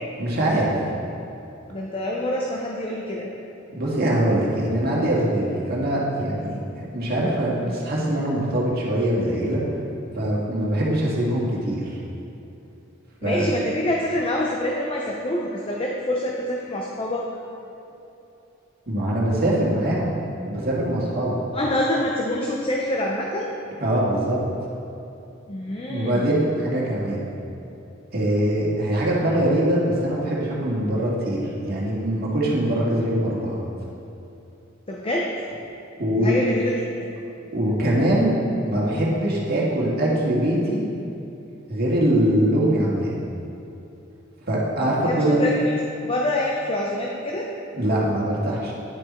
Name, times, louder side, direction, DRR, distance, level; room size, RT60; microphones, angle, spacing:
voice 1, 0.2-0.8 3.7-9.6 10.2-12.0 13.2-13.4 18.9-20.1 20.4-21.4 23.8-24.4 25.9-27.3 28.1-33.6 36.0-36.4 37.5-38.3 38.6-40.8 41.7-43.1 44.5-45.4 47.7-48.7, right 1 dB, 50° right, -5 dB, 1.9 m, -23 dB
voice 2, 1.7-3.3 13.2-17.3 21.5-23.5 25.5-26.2 34.9-35.3 36.1-37.1 45.0-47.5, left 1 dB, 30° left, -2 dB, 0.7 m, -26 dB
9.9 x 6.7 x 4.3 m, 2.9 s
head